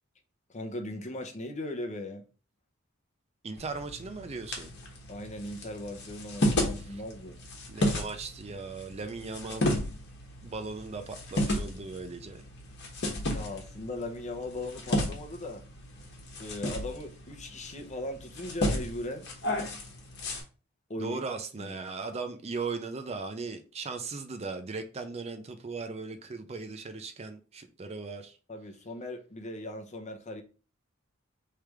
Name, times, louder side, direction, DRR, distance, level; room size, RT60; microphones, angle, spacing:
voice 1, 0.5-2.2 5.1-7.4 13.3-15.6 16.4-19.3 20.9-21.2 21.6-21.7 28.5-30.4, left 1 dB, 35° left, 0.8 m, -38 dB
voice 2, 3.4-4.7 6.5-7.0 7.7-9.7 10.4-12.4 21.0-28.4, right 4 dB, 30° right, 0.5 m, -38 dB
sound 1, 3.6-20.4, left 1 dB, 55° left, 1.3 m, -34 dB
3.3 x 3.3 x 4.8 m
head